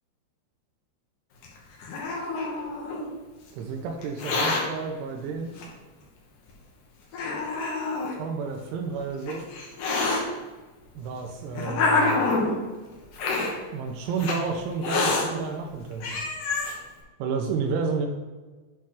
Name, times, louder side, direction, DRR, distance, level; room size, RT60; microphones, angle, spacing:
Hiss, 1.4-3.1 4.0-4.6 5.6-5.7 6.5-6.6 7.1-8.1 9.0-10.2 11.0-12.6 13.1-13.5 14.2-14.4 14.8-15.2 15.7-15.8 16.0-16.7, left 3 dB, 80° left, 1.9 m, -26 dB
voice 1, 3.5-5.5 8.2-9.5 11.0-12.2 13.7-16.2 17.2-18.1, right 5 dB, 80° right, 1 dB, 3.0 m, -31 dB
8.7 x 3.2 x 5.8 m, 1.2 s
omnidirectional pair, 5.6 m